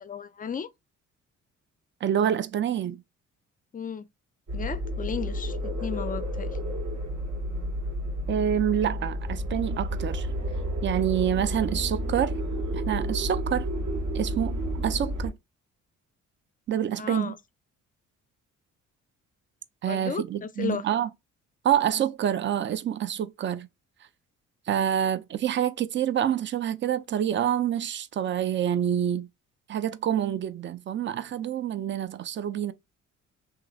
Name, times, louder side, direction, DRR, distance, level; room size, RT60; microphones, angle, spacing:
voice 1, 0.0-0.7 3.7-4.1 4.5-6.5 17.0-17.4 19.9-20.9, left 7 dB, 30° left, 0.4 m, -34 dB
voice 2, 2.0-3.0 8.3-10.3 10.8-12.4 12.7-13.7 14.1-15.3 16.7-17.3 19.8-21.1 21.6-23.7 24.7-29.3 29.7-32.7, right 10 dB, 40° right, 0.4 m, -27 dB
sound 1, 4.5-15.3, equal, 70° right, 1.3 m, -31 dB
2.9 x 2.4 x 2.3 m
cardioid pair, 90°, 30 cm